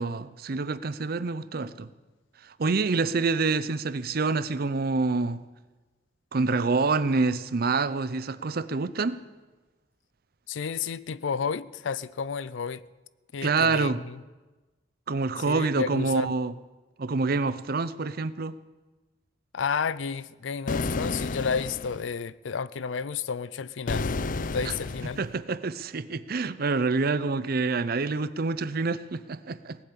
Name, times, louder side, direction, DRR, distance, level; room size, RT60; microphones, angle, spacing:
voice 1, 0.0-1.9 2.4-5.4 6.3-9.2 13.4-14.0 15.1-16.5 17.0-18.5 24.6-24.7 25.2-29.8, right 4 dB, 55° right, 0.6 m, -27 dB
voice 2, 10.5-12.8 13.3-14.2 15.5-16.3 19.5-24.1 24.5-25.2, left 6 dB, 90° left, 0.5 m, -31 dB
sound 1, 20.7-22.1 23.9-25.3, left 3 dB, 45° left, 0.5 m, -31 dB
18.5 x 8.2 x 8.5 m
head